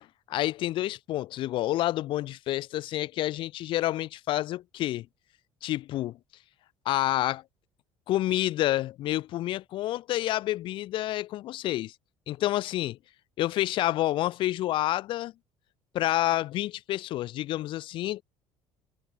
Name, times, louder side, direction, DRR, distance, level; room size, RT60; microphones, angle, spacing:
voice 1, 0.3-5.1 5.6-6.2 6.9-7.4 8.1-11.9 12.3-13.0 13.4-15.3 15.9-18.2, left 15 dB, 60° left, 0.5 m, -28 dB
cardioid pair, 110°, 10 cm